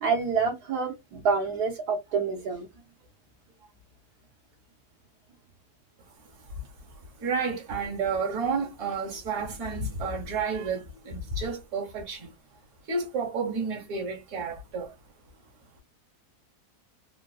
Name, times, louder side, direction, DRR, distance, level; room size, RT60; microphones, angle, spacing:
voice 1, 0.0-2.7, right 5 dB, 80° right, 1.3 m, -27 dB
voice 2, 6.9-12.3 12.9-14.9, right 4 dB, 55° right, 1.5 m, -31 dB
3.6 x 2.4 x 2.3 m
omnidirectional pair, 1.6 m